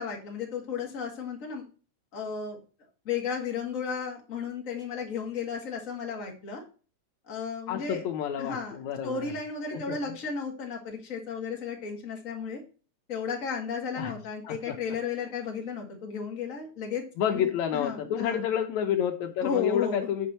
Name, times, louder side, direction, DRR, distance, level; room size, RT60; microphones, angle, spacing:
voice 1, 0.0-1.6 2.1-2.6 3.1-6.6 7.3-8.0 8.4-8.8 9.0-12.6 13.1-17.0 17.3-18.4 19.4-20.1, left 6 dB, 30° left, 0 dB, 2.0 m, -34 dB
voice 2, 7.7-9.2 9.7-10.2 14.0-14.1 14.4-14.8 17.2-20.3, left 9 dB, 80° left, 5 dB, 2.2 m, -29 dB
8.5 x 5.4 x 4.2 m, 0.37 s
omnidirectional pair, 3.3 m